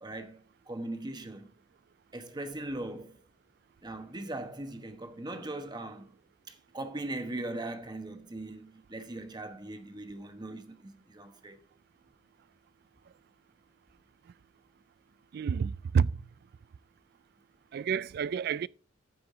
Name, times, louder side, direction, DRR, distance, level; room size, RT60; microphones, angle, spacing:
voice 1, 0.0-1.5 2.1-3.2 3.8-6.1 6.5-11.6, right 2 dB, 20° right, 1.1 m, -40 dB
voice 2, 15.3-16.2 17.7-18.7, right 6 dB, 55° right, 0.3 m, -29 dB
14.5 x 4.9 x 3.7 m
head